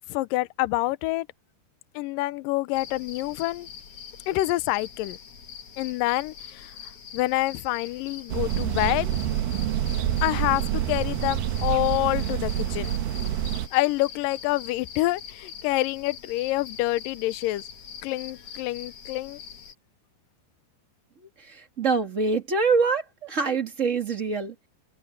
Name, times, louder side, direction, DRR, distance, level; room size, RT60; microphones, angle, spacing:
voice 1, 0.1-1.3 2.0-3.7 4.3-5.2 5.8-6.7 7.1-9.1 10.2-13.0 13.7-17.6 18.0-19.4, left 18 dB, 80° left, 2.0 m, -27 dB
sound 1, 2.7-19.7, left 8 dB, 50° left, 2.0 m, -43 dB
sound 2, 8.3-13.7, right 11 dB, 70° right, 2.3 m, -27 dB
voice 2, 21.4-24.7, right 4 dB, 50° right, 0.9 m, -25 dB
omnidirectional pair, 4.9 m